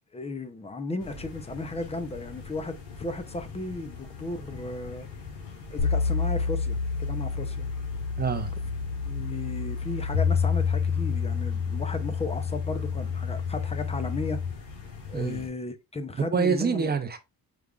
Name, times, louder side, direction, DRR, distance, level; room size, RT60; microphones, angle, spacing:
voice 1, 0.1-5.1 5.7-7.7 9.0-14.4 15.1-16.9, left 2 dB, 15° left, 0.6 m, -35 dB
sound 1, 1.0-15.5, left 4 dB, 85° left, 2.4 m, -43 dB
sound 2, 5.8-14.5, left 5 dB, 45° left, 1.0 m, -28 dB
voice 2, 8.2-8.6 15.1-15.5 16.3-17.2, right 5 dB, 25° right, 0.6 m, -26 dB
5.0 x 3.5 x 2.4 m
cardioid pair, 125°, 39 cm